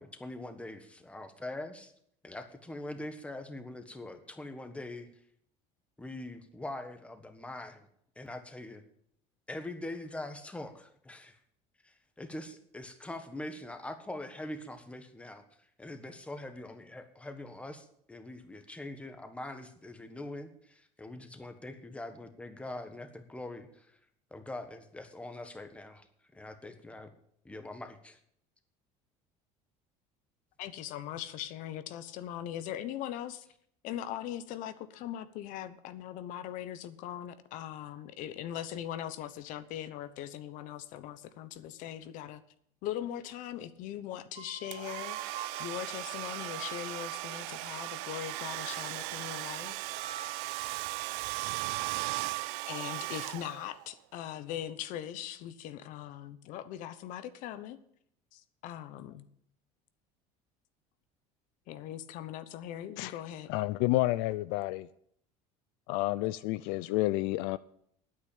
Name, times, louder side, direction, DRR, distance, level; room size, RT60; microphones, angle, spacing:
voice 1, 0.0-1.9 2.2-5.1 6.0-7.9 8.1-8.8 9.5-11.4 11.8-15.4 15.8-24.0 24.3-26.1 26.3-27.1 27.4-28.2, left 1 dB, 10° left, 7 dB, 1.4 m, -43 dB
voice 2, 30.6-33.5 33.8-42.4 42.8-49.8 51.4-51.5 52.7-57.8 58.3-59.3 61.7-63.5, left 11 dB, 65° left, 13 dB, 1.0 m, -40 dB
sound 1, 44.3-47.1 48.0-49.0 49.6-53.6, right 8 dB, 55° right, 1.9 m, -49 dB
Domestic sounds home sounds, 44.7-53.9, right 20 dB, 85° right, 0.5 m, -37 dB
voice 3, 63.5-64.9 65.9-67.6, left 18 dB, 80° left, 16 dB, 0.4 m, -30 dB
9.5 x 8.6 x 8.6 m, 0.69 s
cardioid pair, 120°, 14 cm